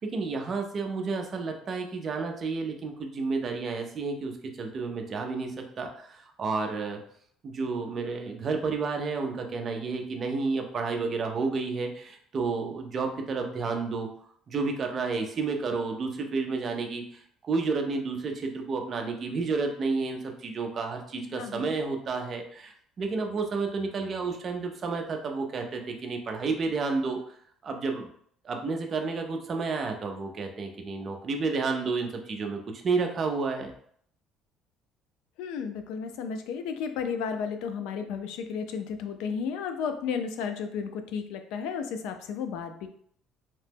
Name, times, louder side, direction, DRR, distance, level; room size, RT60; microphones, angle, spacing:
voice 1, 0.0-7.0 7.4-14.1 14.5-17.0 17.4-27.2 27.6-28.1 28.4-33.7, right 4 dB, 30° right, 3 dB, 0.4 m, -31 dB
voice 2, 21.2-21.7 35.4-42.9, left 6 dB, 80° left, 7 dB, 0.3 m, -33 dB
2.8 x 2.1 x 3.3 m, 0.63 s
cardioid pair, 180°, 0 cm